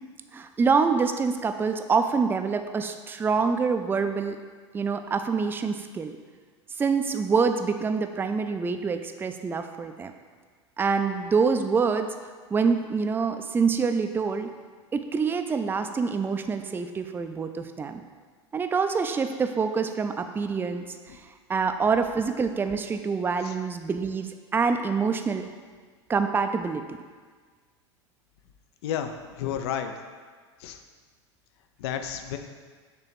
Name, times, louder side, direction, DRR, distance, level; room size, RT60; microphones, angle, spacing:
voice 1, 0.3-4.4 4.7-6.1 6.8-10.1 10.8-12.1 12.5-14.5 14.9-18.0 18.5-20.8 21.1-21.2 21.5-25.5 26.1-27.0, right 5 dB, 15° right, 7 dB, 0.4 m, -26 dB
voice 2, 28.8-29.9 30.6-30.8 31.8-32.4, left 9 dB, 65° left, 7 dB, 0.6 m, -31 dB
6.7 x 3.0 x 5.9 m, 1.5 s
hypercardioid pair, 95°, 15 cm